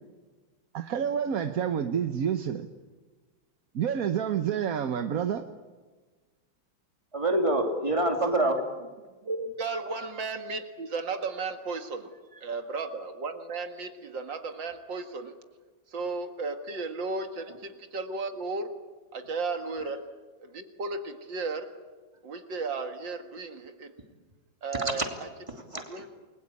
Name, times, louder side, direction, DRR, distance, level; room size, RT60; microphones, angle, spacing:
voice 1, 0.7-2.7 3.7-5.4, right 8 dB, 55° right, 7 dB, 1.3 m, -28 dB
voice 2, 7.1-8.6 24.9-25.0 25.7-26.1, right 1 dB, 15° right, 3 dB, 2.8 m, -26 dB
voice 3, 9.2-12.1 12.4-15.3 15.9-18.7 19.1-20.0 20.4-21.7 22.2-23.9 24.6-25.3 25.9-26.1, right 3 dB, 70° right, 6 dB, 2.4 m, -34 dB
29.0 x 21.5 x 8.5 m, 1.3 s
omnidirectional pair, 2.1 m